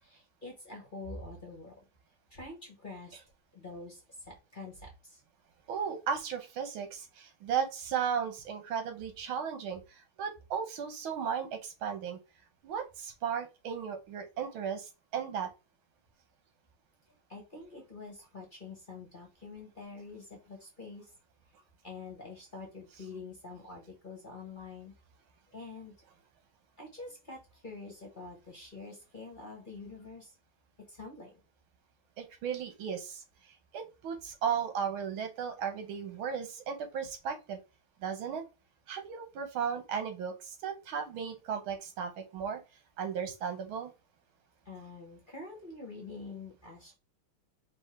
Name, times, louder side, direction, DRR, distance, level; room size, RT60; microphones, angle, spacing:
voice 1, 0.0-1.7 2.3-3.2 3.5-4.0 4.3-5.2 17.3-21.1 21.8-24.9 25.5-25.9 26.8-30.3 30.9-31.4 44.6-47.0, left 3 dB, 30° left, 1 dB, 1.2 m, -46 dB
voice 2, 5.7-12.2 12.6-15.5 32.2-33.2 33.7-37.6 38.0-38.4 38.9-42.6 43.0-43.9, right 7 dB, 80° right, 6 dB, 1.9 m, -35 dB
5.3 x 2.9 x 3.3 m, 0.27 s
omnidirectional pair, 2.2 m